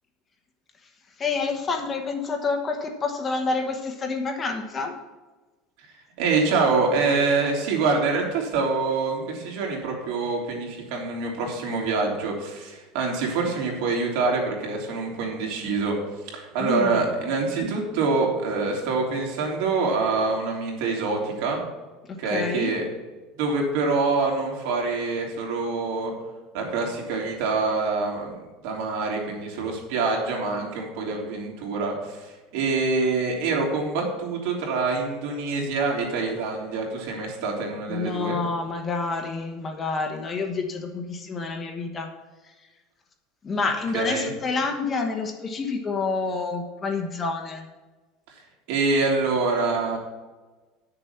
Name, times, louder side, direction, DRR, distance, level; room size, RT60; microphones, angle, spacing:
voice 1, 1.2-5.0 16.6-17.0 22.1-22.8 37.9-42.1 42.4-42.5 43.4-47.7, left 4 dB, 20° left, 4 dB, 1.1 m, -28 dB
voice 2, 6.2-16.0 16.3-21.6 22.2-22.8 23.4-26.1 26.5-38.4 43.9-44.3 48.7-50.0, right 4 dB, 70° right, 0 dB, 3.2 m, -25 dB
10.0 x 6.8 x 5.7 m, 1.2 s
cardioid pair, 155°, 0 cm